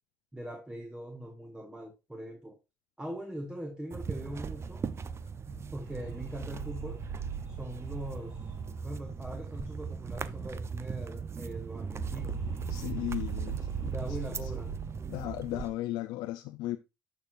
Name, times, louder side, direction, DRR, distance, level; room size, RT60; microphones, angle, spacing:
voice 1, 0.3-2.6 3.0-4.9 5.7-7.0 7.4-8.5 8.8-12.4 13.8-14.7, equal, 10° right, 1.5 m, -41 dB
sound 1, 3.9-15.7, right 5 dB, 35° right, 0.6 m, -39 dB
sound 2, 5.2-10.5 10.8-10.9 11.1-15.5, right 7 dB, 65° right, 3.4 m, -40 dB
voice 2, 12.7-13.6 14.4-14.5 15.1-16.8, left 15 dB, 80° left, 0.5 m, -35 dB
12.5 x 4.7 x 2.5 m
supercardioid pair, 70°, 7 cm